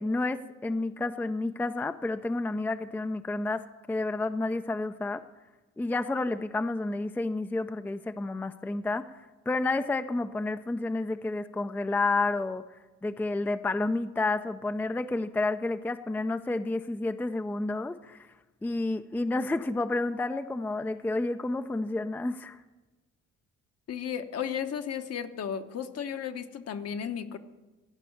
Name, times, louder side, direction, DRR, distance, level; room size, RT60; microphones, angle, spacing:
voice 1, 0.0-5.2 5.8-9.1 9.5-12.6 13.0-18.3 18.6-22.6, left 2 dB, 5° left, 9 dB, 0.4 m, -30 dB
voice 2, 23.9-27.4, left 8 dB, 55° left, 8 dB, 1.0 m, -34 dB
14.5 x 5.4 x 8.5 m, 1.2 s
cardioid pair, 90°, 30 cm